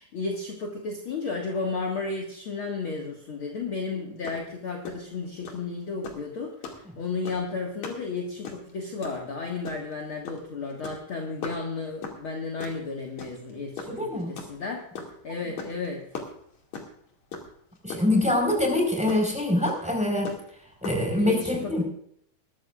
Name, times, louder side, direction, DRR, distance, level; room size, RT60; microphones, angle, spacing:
voice 1, 0.0-14.9 15.2-16.0 21.2-21.8, left 4 dB, 45° left, 0 dB, 2.3 m, -33 dB
sound 1, 4.2-4.4 4.7-4.9 5.4-5.6 6.0-6.2 6.6-6.8 7.2-7.5 7.8-8.0 8.3-8.7 9.0-9.2 9.6-9.9 10.2-10.4 10.7-11.0 11.4-11.6 12.0-12.2 12.6-12.8 13.2-13.5 13.8-15.1 15.6-15.9 16.1-17.0 17.3-17.5 17.8-18.2 18.5-18.6 19.1-19.2 19.7-19.8 20.2-20.5 20.8-21.0, left 5 dB, 60° left, 3.6 m, -36 dB
voice 2, 13.9-14.3 17.8-20.3 20.8-21.8, left 1 dB, ahead, 1 dB, 4.3 m, -24 dB
21.0 x 13.5 x 2.5 m, 0.68 s
omnidirectional pair, 3.6 m